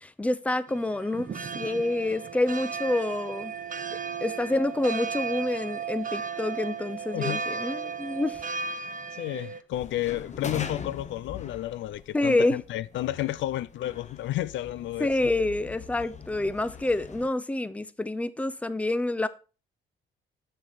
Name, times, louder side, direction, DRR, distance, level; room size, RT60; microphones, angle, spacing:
voice 1, 0.0-3.5 4.2-8.4 12.1-12.6 15.0-19.3, left 2 dB, 5° left, 0.6 m, -27 dB
sound 1, 0.7-9.6, right 6 dB, 40° right, 0.9 m, -35 dB
voice 2, 7.1-7.4 9.2-15.3, left 14 dB, 75° left, 0.4 m, -31 dB
sound 2, 9.7-17.3, left 5 dB, 35° left, 1.1 m, -42 dB
7.5 x 6.7 x 4.0 m
cardioid pair, 90°, 20 cm